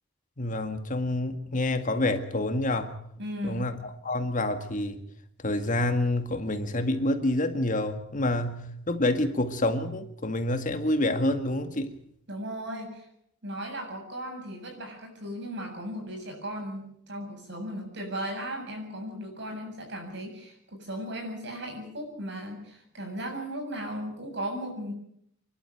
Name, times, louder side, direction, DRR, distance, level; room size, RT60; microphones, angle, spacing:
voice 1, 0.4-3.0 3.4-5.0 5.4-11.9, left 1 dB, 40° left, 7 dB, 1.9 m, -28 dB
voice 2, 3.2-3.7 12.3-13.1 13.4-24.9, equal, 60° right, 3 dB, 7.6 m, -36 dB
28.0 x 12.0 x 9.3 m, 0.71 s
head